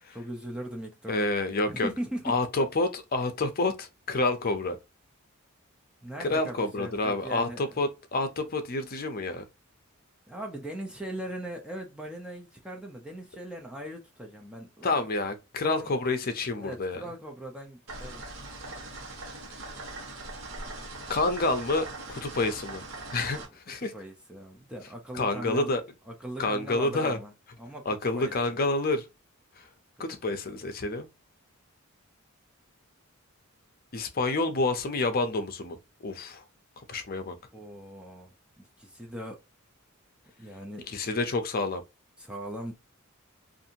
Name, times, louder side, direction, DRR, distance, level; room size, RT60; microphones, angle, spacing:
voice 1, 0.1-1.3 1.7-2.4 6.0-7.7 10.3-14.9 15.6-15.9 16.6-18.3 23.9-25.7 26.1-27.3 27.6-27.9 28.1-28.3 30.2-30.4 37.5-39.4 40.4-40.9 42.2-42.7, right 1 dB, 5° right, 0.5 m, -39 dB
voice 2, 1.1-1.9 2.2-4.8 6.2-9.4 14.8-17.0 21.1-22.8 23.1-23.9 25.1-25.8 26.4-27.2 27.9-29.1 29.6-29.7 30.0-31.1 33.9-35.8 36.0-36.4 36.8-37.4 40.9-41.8, left 2 dB, 45° left, 0.6 m, -28 dB
sound 1, 17.9-23.5, right 2 dB, 65° right, 1.1 m, -41 dB
2.6 x 2.5 x 2.7 m
head